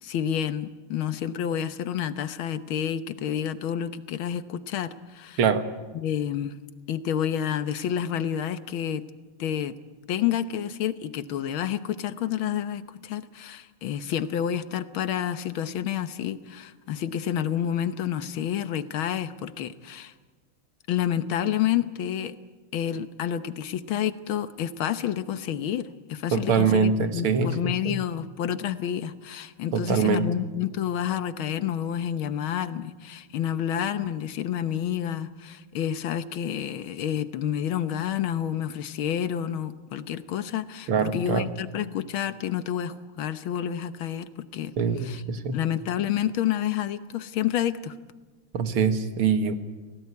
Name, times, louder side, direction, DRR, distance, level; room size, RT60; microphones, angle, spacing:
voice 1, 0.0-5.4 5.9-6.6 6.9-9.0 9.4-9.8 10.1-20.1 20.9-22.3 22.7-44.7 45.0-45.2 45.5-47.9, left 10 dB, 75° left, 12 dB, 1.8 m, -29 dB
voice 2, 26.3-28.0 29.7-30.3 40.9-41.5 44.8-45.6 48.5-49.5, right 6 dB, 90° right, 9 dB, 2.5 m, -24 dB
29.0 x 18.0 x 9.6 m, 1.3 s
omnidirectional pair, 2.3 m